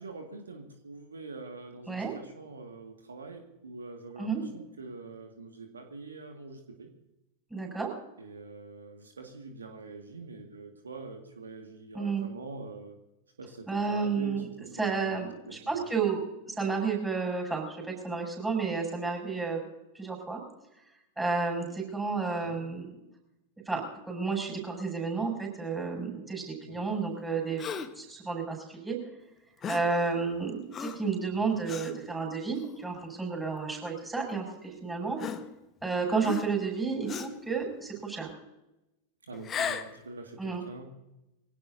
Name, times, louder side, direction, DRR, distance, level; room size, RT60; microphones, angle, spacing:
voice 1, 0.0-6.9 8.2-13.0 13.4-14.7 15.0-15.9 22.4-22.6 26.6-26.9 31.3-31.5 39.3-40.9, right 3 dB, 75° right, 4 dB, 2.0 m, -44 dB
voice 2, 7.5-7.9 11.9-12.3 13.7-14.5 14.8-16.2 16.5-19.6 19.9-20.4 21.2-22.9 23.7-23.8 24.1-27.6 28.0-29.0 29.7-35.2 35.8-38.3 40.4-40.6, right 4 dB, 10° right, -1 dB, 6.5 m, -31 dB
Gasp, 27.6-28.0 29.6-30.0 30.7-31.1 31.7-31.9 32.6-32.8 33.9-34.0 35.2-35.8 36.2-36.7 37.1-37.4 39.3-40.0, left 7 dB, 25° left, 1.3 m, -36 dB
24.0 x 17.5 x 2.7 m, 0.92 s
figure-of-eight pair, 90°, 0 cm